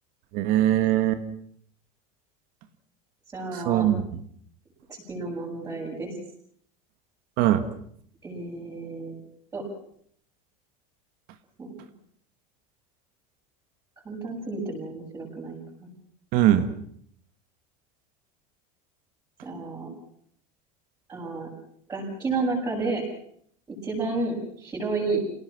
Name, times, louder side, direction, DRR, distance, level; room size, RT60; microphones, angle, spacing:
voice 1, 0.3-1.2 3.5-4.0 7.4-7.6 16.3-16.7, right 12 dB, 50° right, 10 dB, 1.6 m, -21 dB
voice 2, 3.3-3.9 4.9-6.1 8.2-9.1 9.5-9.6 11.6-11.9 14.0-15.9 19.4-19.9 21.1-21.5 21.9-23.0 23.7-25.2, right 3 dB, 15° right, -6 dB, 7.6 m, -31 dB
27.5 x 18.5 x 6.2 m, 0.65 s
supercardioid pair, 155°, 18 cm